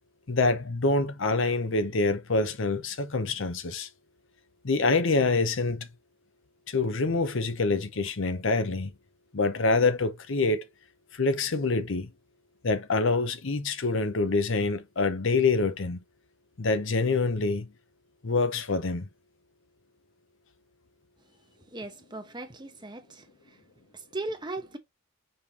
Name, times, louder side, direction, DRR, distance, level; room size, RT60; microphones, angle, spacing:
voice 1, 0.3-3.9 4.6-5.9 6.7-8.9 9.3-10.7 11.1-12.1 12.6-16.0 16.6-17.7 18.2-19.1, left 3 dB, 60° left, 0.7 m, -26 dB
voice 2, 21.7-23.6 23.9-24.8, right 2 dB, 20° right, 0.9 m, -38 dB
5.4 x 3.3 x 2.8 m
head